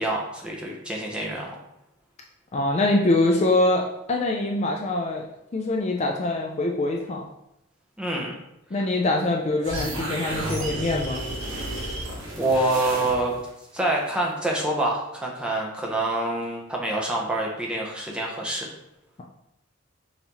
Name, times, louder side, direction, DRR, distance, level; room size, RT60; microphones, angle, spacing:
voice 1, 0.0-1.5 8.0-8.3 12.4-13.4 13.7-18.7, right 2 dB, 5° right, -3 dB, 0.7 m, -26 dB
voice 2, 2.5-5.3 5.5-7.3 8.7-11.2, left 2 dB, 30° left, -1 dB, 0.4 m, -24 dB
sound 1, 9.6-13.5, right 1 dB, 70° right, 1.1 m, -32 dB
5.4 x 2.7 x 2.9 m, 0.84 s
head